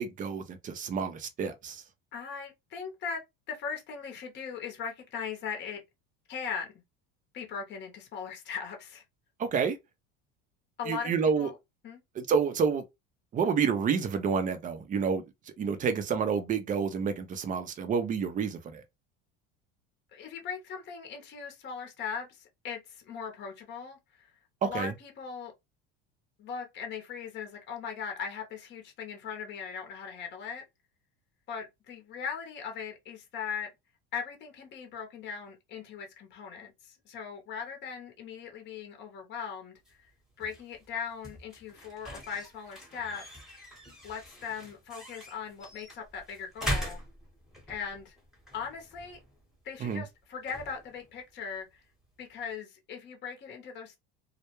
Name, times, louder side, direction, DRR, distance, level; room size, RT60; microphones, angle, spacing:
voice 1, 0.0-1.8 9.4-9.8 10.9-11.5 12.2-12.8 13.3-15.2 15.6-18.8 24.7-24.9 49.8-50.0, right 6 dB, 25° right, 0.5 m, -29 dB
voice 2, 2.1-5.8 6.3-6.7 7.3-9.0 10.8-11.1 11.4-11.5 11.8-12.0 20.1-24.3 24.6-25.5 26.4-30.6 31.5-33.7 34.1-40.0 40.4-43.2 44.0-47.0 47.7-48.2 48.5-49.2 49.6-51.8 52.2-54.0, left 6 dB, 40° left, 0.8 m, -39 dB
sound 1, 39.8-52.5, equal, ahead, 0.9 m, -42 dB
2.2 x 2.1 x 2.9 m
supercardioid pair, 125°, 29 cm